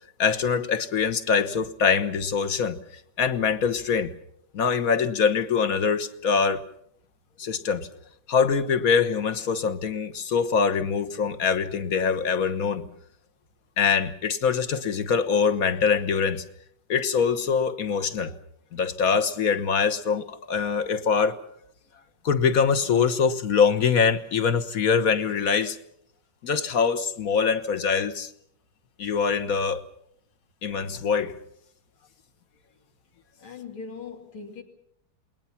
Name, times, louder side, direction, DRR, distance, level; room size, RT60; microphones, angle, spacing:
voice 1, 0.2-2.8 3.2-4.1 4.5-6.6 7.4-7.9 8.3-12.8 13.8-16.4 16.9-18.4 18.7-21.4 22.2-25.8 26.4-28.3 29.0-29.8 30.6-31.3, left 6 dB, 50° left, 1.5 m, -23 dB
voice 2, 33.4-34.6, left 5 dB, 85° left, 3.4 m, -40 dB
28.5 x 21.0 x 5.9 m
omnidirectional pair, 2.2 m